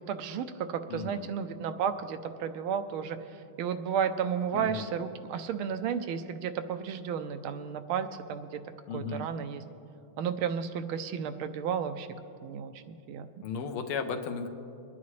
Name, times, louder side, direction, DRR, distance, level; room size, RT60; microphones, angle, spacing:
voice 1, 0.1-3.2 3.6-8.6 8.9-9.6 10.2-12.1 12.4-13.4, right 7 dB, 85° right, 9 dB, 1.5 m, -33 dB
voice 2, 0.9-1.3 4.5-4.9 8.9-9.3 13.4-14.5, left 5 dB, 90° left, 5 dB, 1.7 m, -35 dB
23.0 x 9.7 x 3.2 m, 2.7 s
omnidirectional pair, 2.3 m